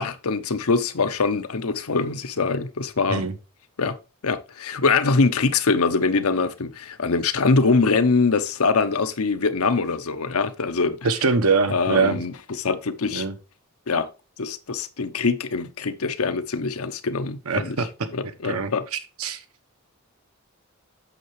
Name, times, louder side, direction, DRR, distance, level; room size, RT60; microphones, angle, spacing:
voice 1, 0.0-3.2 3.8-4.0 4.2-11.0 11.7-13.2 13.9-14.1 14.4-17.8 18.1-18.8, left 4 dB, 85° left, 0.8 m, -23 dB
voice 2, 11.0-12.2 13.1-13.3 17.5-17.9 18.4-19.4, right 4 dB, 85° right, 1.0 m, -23 dB
8.3 x 6.7 x 3.1 m
head